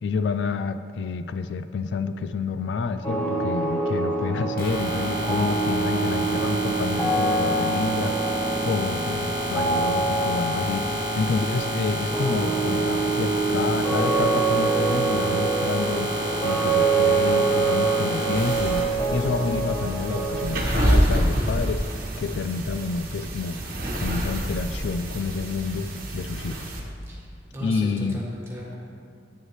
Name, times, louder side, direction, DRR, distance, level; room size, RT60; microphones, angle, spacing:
voice 1, 0.0-16.1 16.4-18.8 19.1-21.8 22.2-23.6 23.9-26.7 27.6-28.2, left 4 dB, 80° left, 11 dB, 0.3 m, -29 dB
sound 1, 3.0-20.5, right 3 dB, 15° left, 1.1 m, -25 dB
sound 2, 4.6-18.8, right 1 dB, 55° left, 2.0 m, -30 dB
sound 3, 18.3-26.8, equal, 55° right, 1.2 m, -27 dB
voice 2, 27.1-28.7, equal, 15° right, -5 dB, 1.7 m, -37 dB
9.2 x 8.8 x 3.2 m, 2.4 s
head